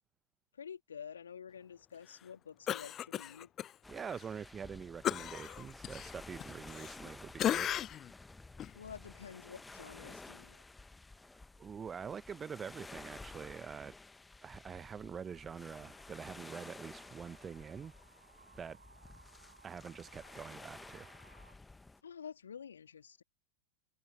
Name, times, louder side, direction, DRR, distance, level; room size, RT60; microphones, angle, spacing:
voice 1, 0.5-3.5 8.7-10.6 22.0-23.2, left 7 dB, 70° left, 3.2 m, -49 dB
Cough, 2.7-3.7 4.1-4.2 5.0-7.1 7.4-8.1 8.6-8.7, left 11 dB, 30° left, 0.4 m, -36 dB
sound 1, 3.8-22.0, left 3 dB, 10° left, 1.4 m, -53 dB
voice 2, 3.9-7.7 11.6-13.9 14.4-17.9 18.5-18.8 19.6-21.1, right 7 dB, 20° right, 1.0 m, -45 dB
sound 2, 14.7-21.6, right 5 dB, 75° right, 7.9 m, -64 dB
figure-of-eight pair, 90°, 0 cm